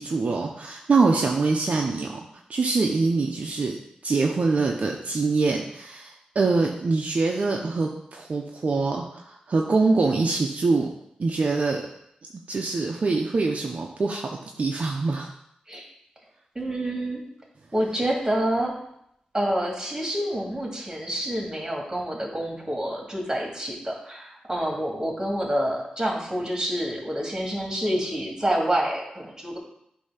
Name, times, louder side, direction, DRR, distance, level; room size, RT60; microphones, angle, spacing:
voice 1, 0.0-2.1 2.5-3.8 4.0-10.9 11.2-11.8 12.3-15.3, right 3 dB, 55° right, 0 dB, 0.6 m, -24 dB
voice 2, 16.5-17.3 17.7-18.7 19.3-29.6, right 1 dB, 20° right, -1 dB, 2.2 m, -27 dB
8.4 x 2.8 x 5.6 m, 0.75 s
cardioid pair, 60°, 3 cm